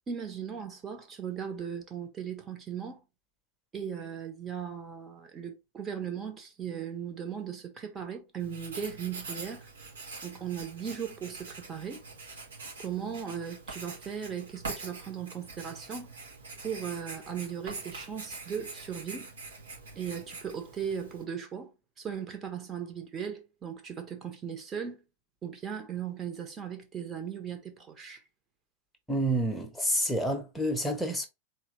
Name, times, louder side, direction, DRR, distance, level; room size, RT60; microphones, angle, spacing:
voice 1, 0.1-3.0 3.7-9.7 10.2-12.0 12.8-16.1 16.6-19.3 20.0-21.7 22.0-25.0 25.4-28.2, right 8 dB, 25° right, 1.3 m, -37 dB
Writing, 8.4-21.2, right 3 dB, 70° right, 1.8 m, -44 dB
voice 2, 29.1-31.3, right 1 dB, 5° left, 1.1 m, -28 dB
4.1 x 3.4 x 3.2 m
figure-of-eight pair, 90°, 0 cm